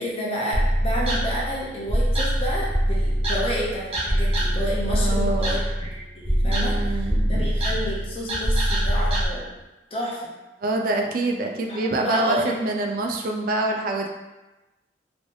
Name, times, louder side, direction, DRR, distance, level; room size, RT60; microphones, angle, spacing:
voice 1, 0.0-9.4 9.9-10.3 11.7-12.6, equal, 30° left, -4 dB, 0.8 m, -30 dB
sound 1, 0.5-9.2, equal, 30° right, 0.8 m, -24 dB
voice 2, 4.9-5.6 6.4-7.5 10.6-14.1, right 2 dB, 50° right, 2 dB, 0.3 m, -26 dB
3.1 x 3.0 x 2.7 m, 1.1 s
head